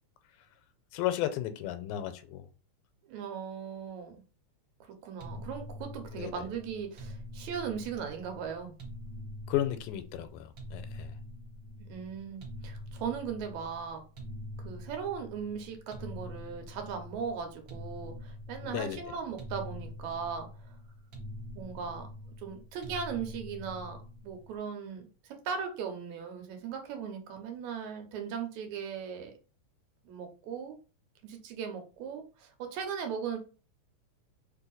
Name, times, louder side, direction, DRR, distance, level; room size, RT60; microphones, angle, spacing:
voice 1, 0.9-2.4 6.1-6.3 9.5-11.1 18.6-19.0, left 12 dB, 90° left, 2.0 m, -33 dB
voice 2, 3.1-4.2 5.0-8.8 11.9-14.0 14.6-20.8 21.6-22.1 22.4-24.0 24.2-25.1 25.5-29.3 30.1-30.8 31.2-33.4, right 7 dB, 80° right, 2.2 m, -38 dB
sound 1, 5.2-24.5, left 1 dB, 55° right, 1.6 m, -45 dB
4.5 x 2.7 x 3.9 m
omnidirectional pair, 3.4 m